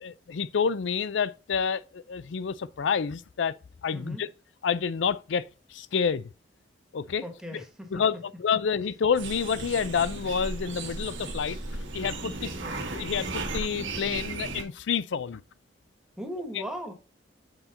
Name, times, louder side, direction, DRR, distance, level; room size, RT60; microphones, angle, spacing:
voice 1, 0.0-3.5 3.8-4.3 4.6-5.4 5.7-6.3 6.9-7.2 7.5-7.6 7.9-11.6 11.9-12.5 12.9-15.4, left 6 dB, 80° left, 0.4 m, -28 dB
voice 2, 3.9-4.2 7.2-8.0 12.4-12.8 16.2-16.9, equal, 5° right, 1.2 m, -38 dB
sound 1, 9.1-14.6, right 2 dB, 90° right, 1.5 m, -35 dB
7.8 x 4.4 x 3.9 m
head